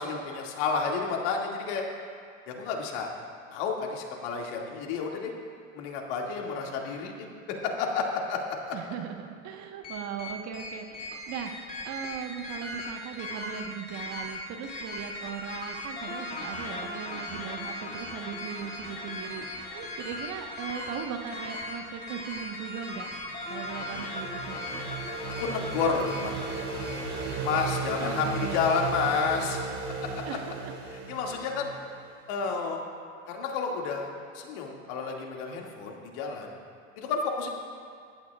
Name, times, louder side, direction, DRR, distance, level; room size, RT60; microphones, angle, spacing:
voice 1, 0.0-1.8 2.5-3.1 3.5-5.3 5.7-7.3 7.8-8.8 25.3-26.1 26.4-26.5 27.4-29.6 30.0-30.1 31.1-31.7 32.3-32.8 33.3-34.1 34.3-36.6 37.0-37.5, left 5 dB, 55° left, 0 dB, 2.3 m, -30 dB
voice 2, 8.7-23.1 23.5-24.6 28.0-28.7 30.3-30.7, right 7 dB, 40° right, 4 dB, 1.3 m, -38 dB
sound 1, 9.8-29.3, left 2 dB, 20° left, 2.3 m, -39 dB
sound 2, 23.3-32.1, right 4 dB, 70° right, 3.1 m, -36 dB
23.0 x 12.0 x 2.4 m, 2.2 s
hypercardioid pair, 90°, 41 cm